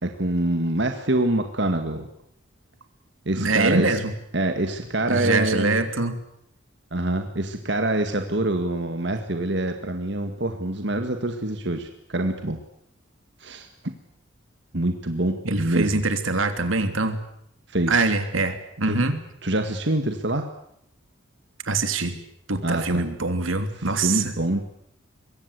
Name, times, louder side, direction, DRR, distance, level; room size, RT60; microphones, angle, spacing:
voice 1, 0.0-2.1 3.3-4.0 4.3-5.8 6.9-12.6 13.4-13.9 14.7-16.0 17.7-18.1 18.8-19.0 19.4-20.5 22.6-23.0 23.8-24.6, right 1 dB, 60° right, 6 dB, 1.9 m, -25 dB
voice 2, 3.3-4.1 5.1-6.2 15.4-17.2 17.9-19.2 21.6-22.1 22.5-24.3, right 3 dB, 85° right, 8 dB, 3.0 m, -24 dB
25.0 x 22.5 x 8.2 m, 0.74 s
head